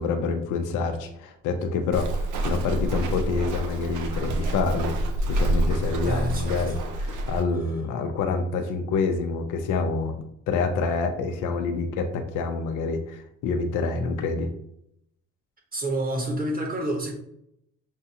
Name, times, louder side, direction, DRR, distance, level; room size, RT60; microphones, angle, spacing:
voice 1, 0.0-4.9 5.3-10.2 10.5-14.5, left 4 dB, 90° left, 5 dB, 0.6 m, -27 dB
Walk footsteps, 1.9-7.4, right 1 dB, 80° right, 0.7 m, -27 dB
voice 2, 6.0-6.6 15.7-17.1, right 1 dB, 30° right, 0 dB, 1.4 m, -28 dB
6.4 x 2.3 x 2.8 m, 0.75 s
cardioid pair, 90°, 30 cm